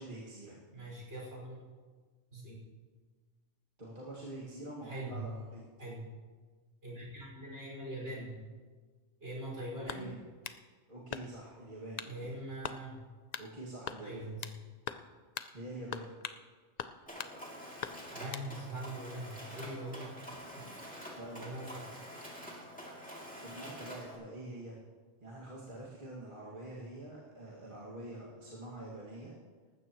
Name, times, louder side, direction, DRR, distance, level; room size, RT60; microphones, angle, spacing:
voice 1, 0.0-0.6 3.8-5.6 9.9-10.2 10.9-12.3 13.4-14.3 15.5-16.1 21.1-21.6 23.4-24.8 25.2-29.3, right 1 dB, 40° right, -7 dB, 2.3 m, -46 dB
voice 2, 0.7-1.6 2.3-2.6 4.8-5.3 5.8-6.0 6.8-8.5 9.2-10.1 12.1-13.0 14.0-14.4 18.1-20.1 20.5-21.0 21.3-21.9, right 1 dB, 60° right, -4 dB, 5.8 m, -42 dB
sound 1, 9.9-10.6 11.1-11.5 12.0-12.2 12.6-12.8 13.3-13.5 13.9-14.6 14.9-15.1 15.4-15.5 15.9-16.4 16.8-17.4 17.8-18.5, left 7 dB, 60° left, 0.4 m, -42 dB
Mechanisms, 17.1-24.2, equal, 5° left, 2.7 m, -47 dB
19.0 x 15.0 x 3.1 m, 1.5 s
omnidirectional pair, 1.3 m